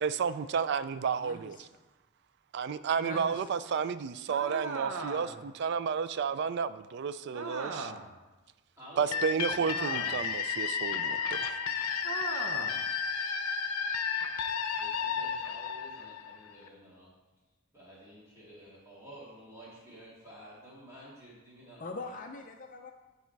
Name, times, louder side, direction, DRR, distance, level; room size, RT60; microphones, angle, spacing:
voice 1, 0.0-1.6 2.5-7.9 9.0-11.6, right 6 dB, 50° right, 0.3 m, -32 dB
voice 2, 1.2-1.6 3.0-3.5 21.8-22.9, left 3 dB, 35° left, 0.5 m, -42 dB
sound 1, 4.3-5.5 7.3-8.2 9.7-10.4 12.0-12.8, right 3 dB, 70° right, 0.8 m, -39 dB
voice 3, 8.8-9.7 14.8-17.1 17.7-22.1, equal, 15° right, 2.1 m, -51 dB
sound 2, 9.1-16.7, left 6 dB, 90° left, 0.6 m, -33 dB
9.8 x 4.1 x 4.6 m
head